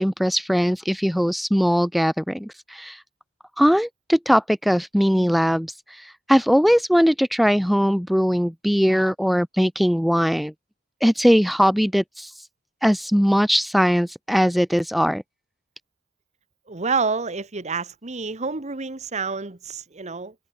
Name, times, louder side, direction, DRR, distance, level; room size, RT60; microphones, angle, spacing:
voice 1, 0.0-3.0 3.6-10.5 11.0-12.5 12.8-15.2, equal, ahead, 0.4 m, -20 dB
voice 2, 16.7-20.3, right 4 dB, 35° right, 1.3 m, -28 dB
head